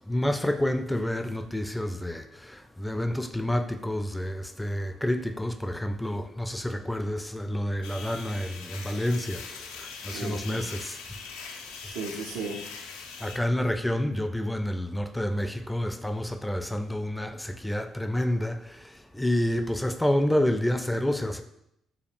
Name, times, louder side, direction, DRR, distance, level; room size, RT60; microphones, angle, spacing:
voice 1, 0.1-11.0 13.2-21.4, left 1 dB, 10° left, 0.4 m, -29 dB
sound 1, 7.8-13.4, left 5 dB, 80° left, 0.3 m, -41 dB
voice 2, 10.1-10.7 11.5-12.8 13.2-13.4, right 3 dB, 80° right, 0.5 m, -37 dB
4.9 x 2.3 x 3.3 m
hypercardioid pair, 45°, 0 cm